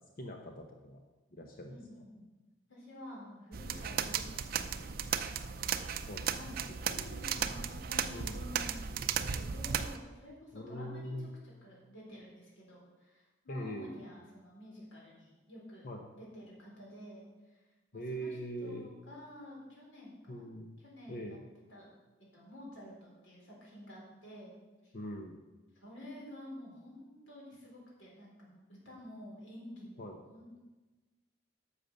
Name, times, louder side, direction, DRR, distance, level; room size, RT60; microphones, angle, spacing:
voice 1, 0.2-1.0 1.3-1.8 3.7-3.8 6.1-6.3 6.9-7.0 8.1-8.4 10.5-11.3 13.5-14.0 15.8-16.0 17.9-18.9 20.3-20.8 21.1-21.4 24.9-25.4 30.0-30.2, equal, 50° left, 2 dB, 0.9 m, -42 dB
voice 2, 1.7-2.3 2.7-5.5 6.4-6.5 6.8-11.3 11.6-17.6 17.9-20.4 20.8-21.4 21.7-21.9 22.3-24.5 24.8-24.9 25.8-30.6, left 1 dB, 90° left, -4 dB, 4.2 m, -50 dB
sound 1, 3.5-10.0, right 7 dB, 50° right, 0.5 m, -35 dB
10.5 x 6.6 x 6.6 m, 1.2 s
head